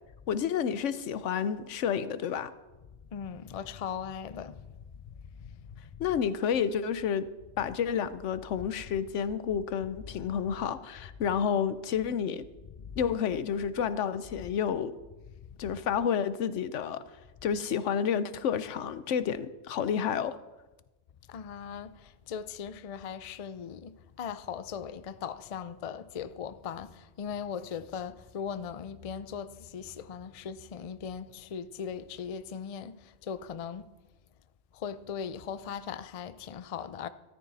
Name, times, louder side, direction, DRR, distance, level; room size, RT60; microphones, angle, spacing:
voice 1, 0.3-2.5 6.0-7.3 7.6-12.4 13.0-14.9 15.6-17.0 17.4-20.4, left 7 dB, 85° left, 1.0 m, -30 dB
voice 2, 3.1-4.8 5.0-5.9 12.8-13.0 15.5-15.6 21.3-33.9 34.7-37.1, left 7 dB, 50° left, 0.4 m, -39 dB
13.5 x 13.0 x 4.1 m
omnidirectional pair, 1.2 m